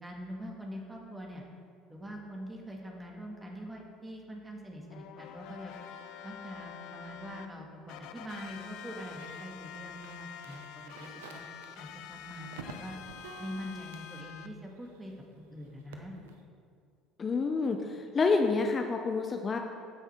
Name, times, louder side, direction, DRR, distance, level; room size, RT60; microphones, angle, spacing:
voice 1, 0.0-1.4 1.9-5.7 6.2-11.4 11.8-13.0 13.4-16.2, equal, 15° right, 0 dB, 1.9 m, -44 dB
sound 1, 4.9-7.5 7.9-14.5, left 9 dB, 70° left, 0.6 m, -47 dB
sound 2, 8.0-15.3 15.6-16.4, right 4 dB, 85° right, 0.8 m, -51 dB
voice 2, 17.2-19.6, left 4 dB, 35° left, 4 dB, 0.8 m, -28 dB
14.5 x 5.7 x 4.5 m, 2.2 s
hypercardioid pair, 70°, 0 cm